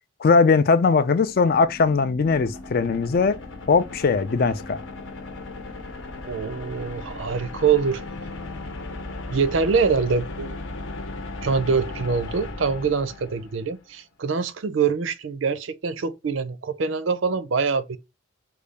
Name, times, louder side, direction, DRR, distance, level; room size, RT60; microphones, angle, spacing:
voice 1, 0.2-3.4 3.7-4.8, left 4 dB, 45° left, 0.3 m, -20 dB
sound 1, 1.3-13.8, left 2 dB, 65° left, 0.8 m, -37 dB
voice 2, 6.2-8.0 9.3-10.6 11.4-18.0, right 5 dB, 70° right, 0.5 m, -24 dB
3.8 x 2.3 x 3.2 m
head